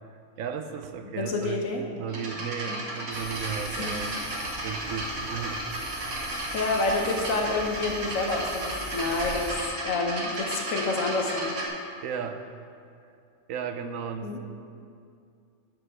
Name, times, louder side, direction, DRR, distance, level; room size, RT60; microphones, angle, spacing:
voice 1, 0.4-1.6 1.9-4.2 4.5-5.7 12.0-12.4 13.5-14.4, right 7 dB, 90° right, 8 dB, 1.1 m, -34 dB
voice 2, 1.1-1.8 2.6-2.8 3.8-4.0 6.5-11.6 14.2-14.4, left 3 dB, 90° left, 1 dB, 1.4 m, -28 dB
sound 1, 2.1-11.7, right 1 dB, 70° right, 1.6 m, -34 dB
sound 2, 3.1-9.5, right 1 dB, 50° right, 1.6 m, -41 dB
12.0 x 5.2 x 4.8 m, 2.4 s
omnidirectional pair, 1.3 m